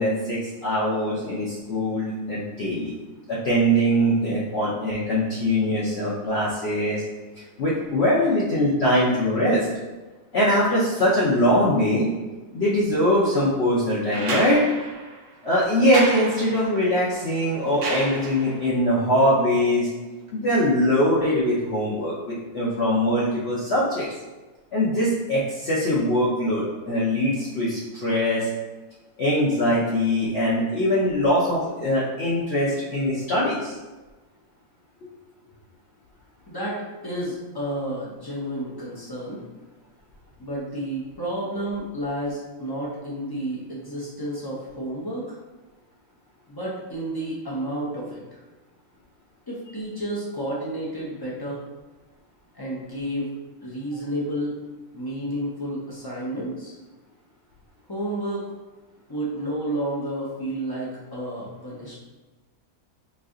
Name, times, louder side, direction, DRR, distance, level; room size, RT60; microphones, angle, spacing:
voice 1, 0.0-2.9 3.3-7.0 7.6-9.7 10.3-12.1 12.5-14.6 15.4-19.9 20.3-24.1 24.7-28.5 29.2-33.7, equal, 55° left, -8 dB, 0.8 m, -22 dB
sound 1, 14.1-18.7 20.3-20.4, right 3 dB, 80° right, 0.5 m, -32 dB
voice 2, 36.5-36.8 37.0-39.4 40.4-45.4 46.5-48.4 49.5-51.6 52.6-53.3 53.6-54.6 54.9-56.7 57.9-58.4 59.1-61.9, right 1 dB, 30° left, -6 dB, 0.4 m, -31 dB
3.2 x 2.6 x 3.6 m, 1.2 s
omnidirectional pair, 1.6 m